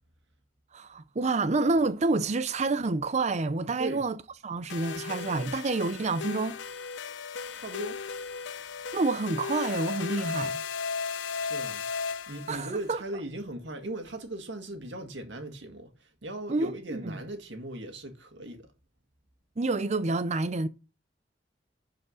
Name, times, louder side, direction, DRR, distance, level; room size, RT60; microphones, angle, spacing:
voice 1, 0.7-4.2 4.4-6.6 8.9-10.6 12.5-13.0 16.5-17.2 19.6-20.7, right 3 dB, 40° right, 0.5 m, -28 dB
sound 1, 4.7-12.8, left 5 dB, 80° left, 0.6 m, -35 dB
voice 2, 7.5-8.0 11.4-11.8 12.3-18.7, right 1 dB, 75° right, 1.9 m, -38 dB
11.0 x 4.8 x 6.4 m
head